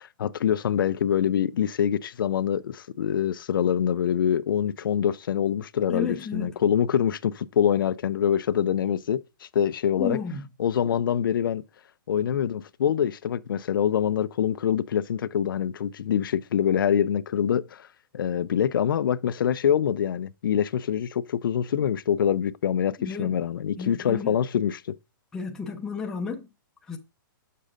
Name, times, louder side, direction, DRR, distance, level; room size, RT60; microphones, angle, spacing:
voice 1, 0.0-10.2 10.6-11.6 12.1-17.9 18.1-24.9, left 9 dB, 75° left, 0.5 m, -25 dB
voice 2, 5.9-6.6 10.0-10.4 23.0-23.3 23.8-24.4 25.3-26.5 26.9-27.0, left 5 dB, 5° left, 0.5 m, -32 dB
7.4 x 6.6 x 2.5 m
hypercardioid pair, 175°, 12 cm